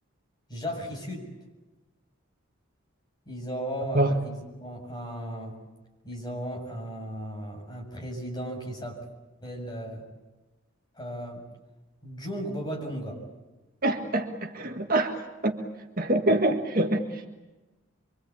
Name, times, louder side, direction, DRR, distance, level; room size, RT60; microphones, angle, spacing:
voice 1, 0.5-1.3 3.3-5.6 6.0-9.0 9.4-10.0 11.0-11.4 12.0-13.2, equal, 20° left, 0 dB, 7.3 m, -35 dB
voice 2, 13.8-15.6 16.0-17.3, right 1 dB, 45° right, 4 dB, 1.8 m, -25 dB
25.5 x 24.5 x 8.6 m, 1.1 s
head